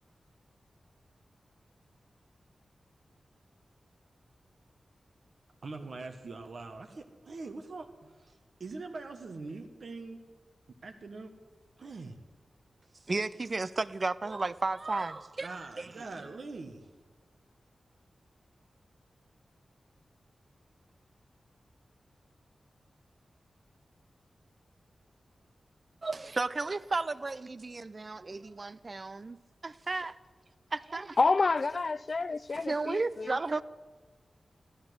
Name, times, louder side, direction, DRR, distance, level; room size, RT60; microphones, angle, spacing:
voice 1, 5.6-10.2 10.7-11.3 11.8-12.2 15.4-16.9, right 3 dB, 60° right, 1.3 m, -43 dB
voice 2, 13.1-15.5 15.8-16.3 26.0-29.4 29.6-30.2 30.7-31.2 32.2-33.6, right 3 dB, 35° right, 0.5 m, -34 dB
voice 3, 31.2-33.4, left 3 dB, 45° left, 0.4 m, -28 dB
14.0 x 13.0 x 7.9 m
wide cardioid pair, 135°, 0 cm